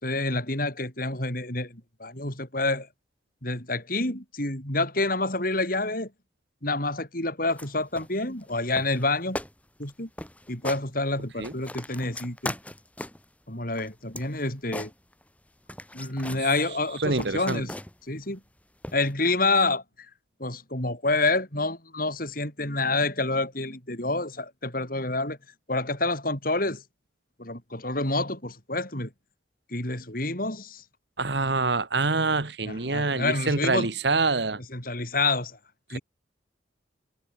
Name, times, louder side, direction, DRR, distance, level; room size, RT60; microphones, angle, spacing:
voice 1, 0.0-2.9 3.4-6.1 6.6-9.4 9.8-10.1 10.5-12.5 13.5-14.9 15.9-17.7 18.1-18.4 18.9-19.8 20.4-25.4 25.7-26.8 27.4-29.1 29.7-30.8 32.7-33.9 34.7-35.6 35.9-36.0, left 2 dB, 50° left, 7.3 m, -28 dB
sound 1, 7.5-7.7 8.0-8.5 8.8-9.1 9.3-9.5 9.8-9.9 10.2-10.8 11.2-13.3 13.7-15.4 15.7-16.5 16.9-18.1 18.8-19.1, left 1 dB, 10° left, 6.0 m, -38 dB
voice 2, 17.0-17.6 31.2-34.6 35.9-36.0, right 3 dB, 65° right, 1.6 m, -26 dB
head